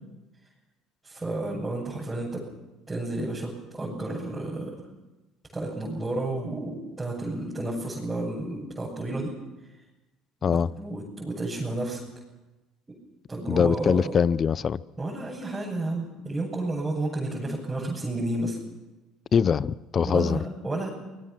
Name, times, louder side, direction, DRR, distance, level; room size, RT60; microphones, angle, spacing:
voice 1, 1.0-2.4 2.9-4.7 5.5-9.3 10.4-12.0 13.3-14.2 15.0-18.6 20.0-20.9, right 2 dB, 15° right, 7.2 m, -31 dB
voice 2, 13.5-14.8 19.3-20.4, left 7 dB, 45° left, 0.7 m, -23 dB
25.5 x 19.5 x 6.1 m
hypercardioid pair, 70°, 0 cm